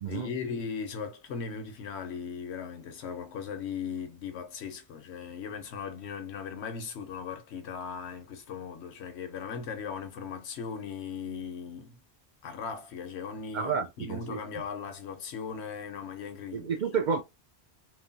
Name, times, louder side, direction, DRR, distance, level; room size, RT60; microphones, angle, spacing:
voice 1, 0.1-12.0 12.4-16.7, left 6 dB, 80° left, 1.0 m, -38 dB
voice 2, 13.5-14.4 16.5-17.2, right 6 dB, 55° right, 0.5 m, -30 dB
3.1 x 2.1 x 2.5 m
omnidirectional pair, 1.1 m